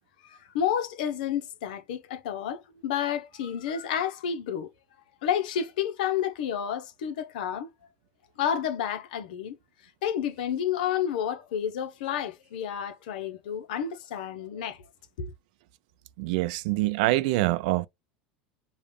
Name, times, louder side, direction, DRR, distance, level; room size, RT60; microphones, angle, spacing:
voice 1, 0.2-4.7 5.2-7.7 8.4-9.6 10.0-14.8 15.2-15.3, left 9 dB, 75° left, 0.8 m, -30 dB
voice 2, 16.2-17.9, right 18 dB, 70° right, 0.5 m, -25 dB
5.1 x 2.4 x 3.2 m
hypercardioid pair, 95°, 5 cm